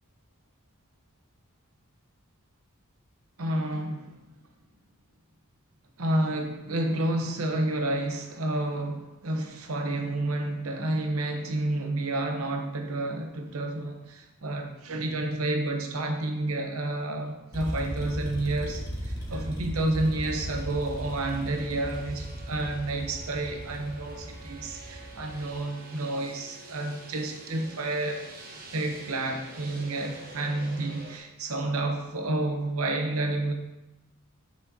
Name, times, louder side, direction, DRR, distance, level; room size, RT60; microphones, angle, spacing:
voice 1, 3.4-4.1 6.0-28.3 28.7-33.5, right 2 dB, 75° right, 0.8 m, -30 dB
sound 1, 17.5-25.6, equal, 20° left, 1.3 m, -37 dB
sound 2, 20.0-31.2, right 3 dB, 45° right, 1.1 m, -47 dB
7.2 x 6.0 x 2.7 m
head